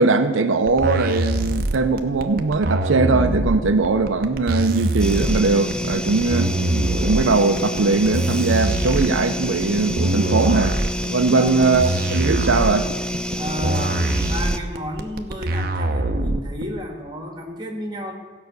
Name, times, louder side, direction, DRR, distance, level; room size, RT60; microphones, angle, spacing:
voice 1, 0.0-6.5 7.0-10.8 11.1-12.9, right 3 dB, 80° right, 7 dB, 0.7 m, -20 dB
sound 1, 0.7-16.6, right 1 dB, 50° right, 0.8 m, -23 dB
sound 2, 5.0-14.6, equal, 5° left, 0.3 m, -28 dB
voice 2, 11.2-11.8 13.4-18.1, equal, 20° right, 3 dB, 1.5 m, -32 dB
15.5 x 5.8 x 8.0 m, 1.5 s
head